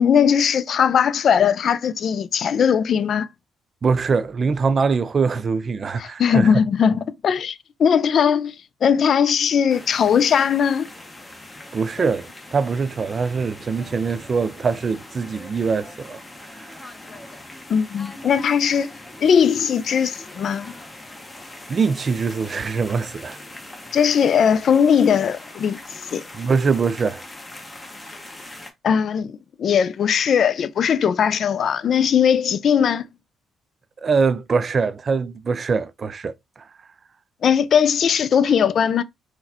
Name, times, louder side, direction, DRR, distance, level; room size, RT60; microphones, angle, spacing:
voice 1, 0.0-3.3 6.0-8.6 8.8-10.9 12.0-12.1 17.7-18.9 19.2-20.7 23.9-26.2 28.8-33.1 37.4-39.0, left 7 dB, 60° left, 0.3 m, -19 dB
voice 2, 3.8-6.5 11.7-16.5 21.7-23.4 26.3-27.2 34.0-36.3, right 5 dB, 40° right, 0.3 m, -23 dB
sound 1, 9.7-28.7, left 1 dB, 15° left, 0.7 m, -41 dB
3.9 x 2.1 x 2.8 m
cardioid pair, 90°, 0 cm